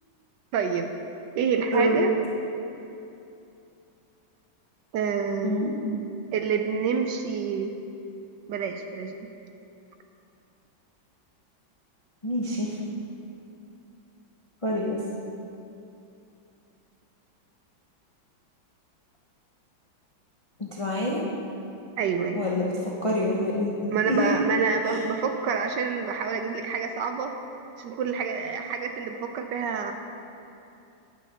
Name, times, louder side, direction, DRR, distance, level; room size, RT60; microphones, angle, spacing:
voice 1, 0.5-0.9 1.4-2.1 4.9-5.7 6.3-7.7 8.5-9.2 22.0-22.4 23.9-27.3 27.8-29.9, right 6 dB, 75° right, 6 dB, 1.1 m, -27 dB
voice 2, 12.2-12.7 14.6-15.0 20.6-21.2 22.3-22.7 23.0-24.3, left 1 dB, 45° left, -4 dB, 0.4 m, -26 dB
9.6 x 6.2 x 5.8 m, 2.7 s
omnidirectional pair, 2.2 m